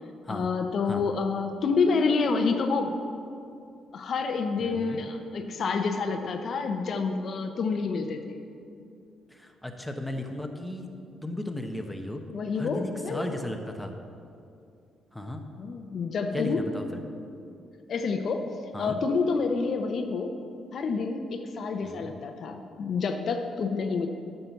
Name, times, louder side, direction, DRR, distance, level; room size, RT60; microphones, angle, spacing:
voice 1, 0.3-2.9 3.9-8.4 12.3-13.3 15.6-16.7 17.9-18.4 18.8-20.3 20.7-24.1, left 4 dB, 55° left, 5 dB, 0.8 m, -28 dB
voice 2, 4.6-5.0 9.3-10.9 11.2-12.2 12.6-13.9 15.1-15.4 16.3-17.0 18.7-19.0 21.8-22.1, left 1 dB, 5° left, 3 dB, 0.9 m, -35 dB
9.9 x 6.7 x 6.0 m, 2.5 s
cardioid pair, 90°, 0 cm